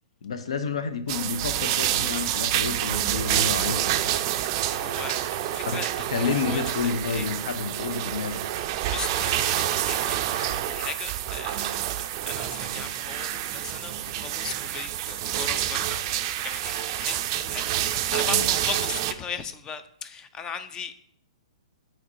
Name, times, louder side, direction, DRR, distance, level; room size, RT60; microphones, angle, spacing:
voice 1, 0.2-4.1 5.6-5.8 6.1-8.4 18.3-18.5, left 5 dB, 70° left, 10 dB, 0.6 m, -30 dB
sound 1, 1.1-19.1, right 12 dB, 40° right, 0.4 m, -28 dB
voice 2, 4.7-7.3 8.5-11.7 12.3-17.2 17.5-20.9, left 7 dB, 20° left, 11 dB, 0.5 m, -38 dB
8.4 x 4.4 x 2.6 m, 0.69 s
hypercardioid pair, 125°, 3 cm